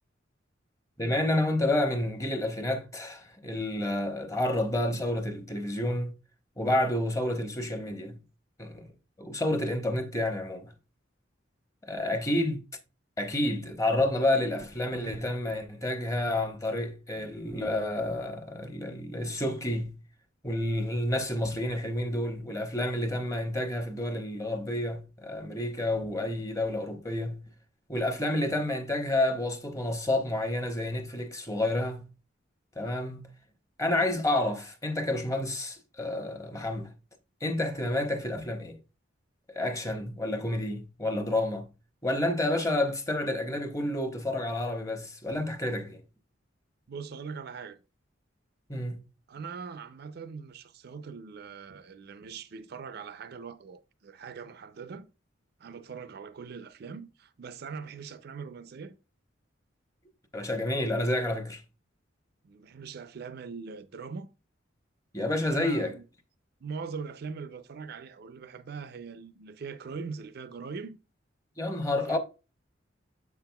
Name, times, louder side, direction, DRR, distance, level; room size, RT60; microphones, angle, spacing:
voice 1, 1.0-6.1 6.6-8.2 8.6-8.9 9.2-10.7 11.9-12.6 13.2-20.0 20.4-27.4 27.9-32.0 32.8-33.3 33.8-36.9 37.4-38.8 39.5-41.7 42.0-46.0 48.7-49.0 60.3-61.6 65.1-65.9 71.6-72.2, left 1 dB, 15° left, 0.9 m, -29 dB
voice 2, 46.9-47.8 49.3-55.1 55.6-59.0 62.4-64.3 65.5-66.0 66.6-71.0 71.9-72.2, right 5 dB, 55° right, 0.4 m, -41 dB
7.3 x 5.9 x 2.2 m
head